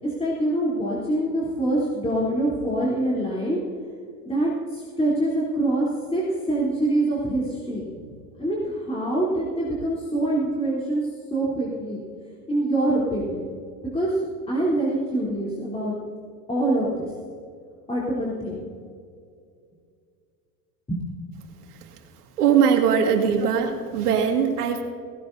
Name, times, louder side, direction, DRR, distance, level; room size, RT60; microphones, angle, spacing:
voice 1, 0.0-3.6 4.2-7.8 8.4-11.0 11.3-12.0 12.5-13.4 13.8-14.2 14.5-16.0 16.5-17.1 17.9-18.6 20.9-21.0 23.2-23.4, right 1 dB, 15° left, -7 dB, 3.4 m, -25 dB
voice 2, 22.4-24.8, right 7 dB, 80° right, 2 dB, 2.1 m, -20 dB
17.0 x 17.0 x 2.7 m, 2.3 s
hypercardioid pair, 95°, 45 cm